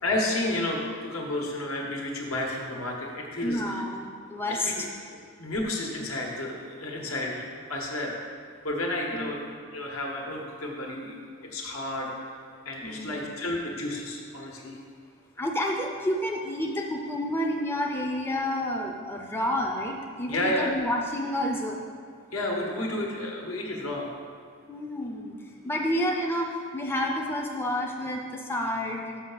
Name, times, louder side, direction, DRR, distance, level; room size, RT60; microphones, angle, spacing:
voice 1, 0.0-3.8 4.5-4.8 5.4-7.4 7.7-8.2 8.6-9.4 9.7-11.2 11.5-12.1 12.6-14.8 20.3-20.7 22.3-24.1, left 1 dB, 75° left, -1 dB, 1.3 m, -31 dB
voice 2, 3.4-4.7 9.1-9.3 12.8-13.3 15.4-21.8 22.9-23.1 24.7-29.2, left 1 dB, 10° left, 0 dB, 0.5 m, -30 dB
6.7 x 5.8 x 5.6 m, 2.2 s
head